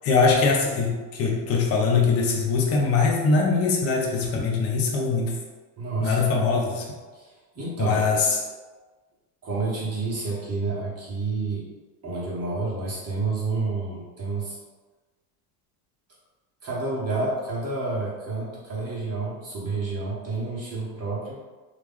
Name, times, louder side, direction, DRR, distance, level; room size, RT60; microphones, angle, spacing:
voice 1, 0.0-5.4 6.0-6.8 7.8-8.4, left 4 dB, 30° left, -1 dB, 0.7 m, -22 dB
voice 2, 5.8-6.3 7.1-7.3 7.5-8.0 9.4-11.6 12.0-14.6 16.6-21.4, right 3 dB, 30° right, -7 dB, 1.1 m, -29 dB
3.1 x 2.5 x 3.5 m, 1.3 s
supercardioid pair, 120°, 49 cm